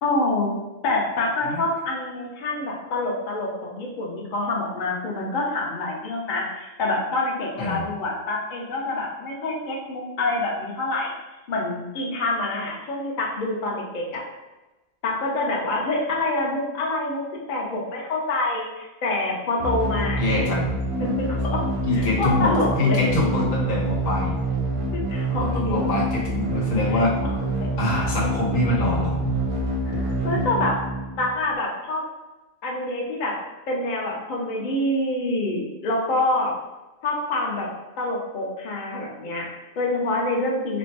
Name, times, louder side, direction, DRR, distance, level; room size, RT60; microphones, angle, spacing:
voice 1, 0.0-0.5 0.8-11.1 11.5-14.2 15.0-17.2 17.5-20.2 21.0-21.6 21.9-23.0 24.9-25.9 26.9-27.7 29.8-30.7 31.1-32.0 32.6-33.4 33.7-36.5 37.0-37.7 38.0-40.8, left 2 dB, 45° left, -2 dB, 0.7 m, -26 dB
sound 1, 19.6-31.5, right 1 dB, 50° right, 0.4 m, -26 dB
voice 2, 20.2-20.7 21.8-24.4 25.4-27.1 27.8-29.4 29.9-30.0 30.3-30.4, left 2 dB, 90° left, -3 dB, 1.3 m, -24 dB
3.3 x 2.1 x 4.0 m, 1.1 s
omnidirectional pair, 1.3 m